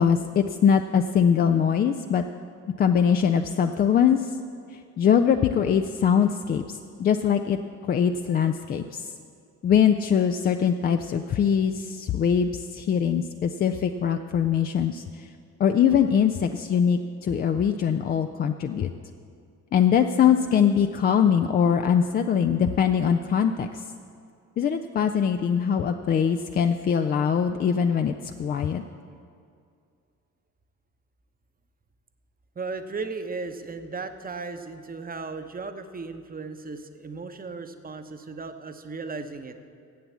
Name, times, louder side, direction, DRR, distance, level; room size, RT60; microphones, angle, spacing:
voice 1, 0.0-2.2 2.8-4.3 4.7-7.6 7.9-9.1 9.6-15.3 15.6-18.9 19.7-23.9 24.6-28.8, left 8 dB, 25° left, 7 dB, 0.3 m, -22 dB
voice 2, 32.6-39.6, right 4 dB, 20° right, 8 dB, 0.8 m, -36 dB
10.5 x 8.0 x 7.3 m, 2.4 s
figure-of-eight pair, 45°, 46 cm